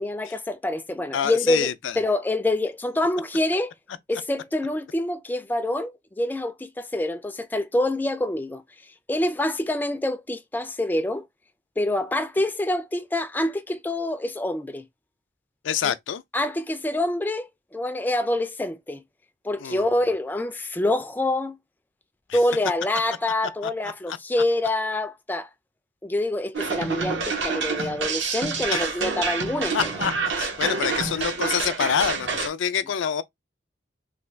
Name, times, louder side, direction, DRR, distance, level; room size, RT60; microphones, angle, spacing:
voice 1, 0.0-3.7 4.1-8.6 9.1-11.3 11.8-14.9 15.8-15.9 16.3-19.0 19.4-21.6 22.3-25.5 26.0-29.9, left 1 dB, 10° left, 0.3 m, -26 dB
voice 2, 1.1-2.0 15.6-16.2 19.6-19.8 22.3-22.4 23.6-23.7 24.1-24.2 27.8-27.9 28.7-28.8 29.7-33.2, left 8 dB, 85° left, 0.4 m, -26 dB
sound 1, 26.5-32.5, right 4 dB, 80° right, 1.0 m, -27 dB
3.3 x 2.2 x 3.1 m
head